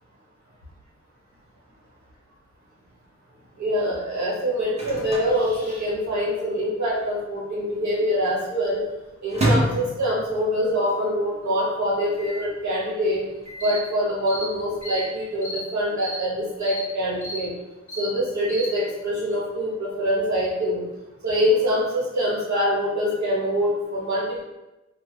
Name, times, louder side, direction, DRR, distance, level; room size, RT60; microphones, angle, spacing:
voice 1, 3.6-8.8 9.2-13.2 13.6-17.5 18.0-20.8 21.2-24.4, equal, 75° right, -6 dB, 1.1 m, -24 dB
Microwave oven, 4.1-6.4 6.6-6.7 6.9-7.5 8.0-10.7 11.1-11.2 11.4-11.5 12.1-12.6 13.4-13.9 14.5-15.2, right 1 dB, 20° right, 0.8 m, -29 dB
sound 1, 13.6-13.8 14.3-14.5 14.8-15.0 15.4-15.6 16.0-16.2 16.6-16.8 17.2-17.4 17.9-18.1 18.5-18.7, left 1 dB, 45° left, 0.6 m, -33 dB
3.3 x 2.1 x 3.1 m, 1.0 s
wide cardioid pair, 145°, 29 cm